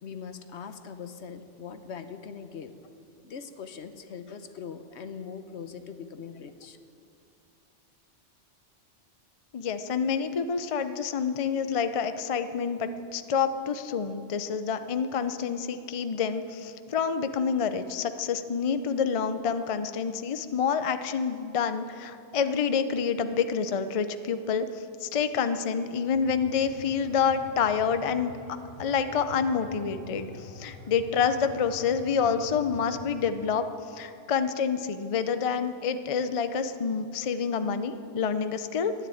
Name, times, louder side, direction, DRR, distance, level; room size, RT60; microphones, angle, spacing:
voice 1, 0.0-2.7 3.2-6.8, left 6 dB, 75° left, 9 dB, 1.1 m, -41 dB
voice 2, 9.5-38.9, left 6 dB, 40° left, 10 dB, 0.5 m, -28 dB
sound 1, 26.1-33.1, left 2 dB, 80° right, 5.2 m, -46 dB
13.0 x 9.3 x 9.2 m, 2.5 s
omnidirectional pair, 1.2 m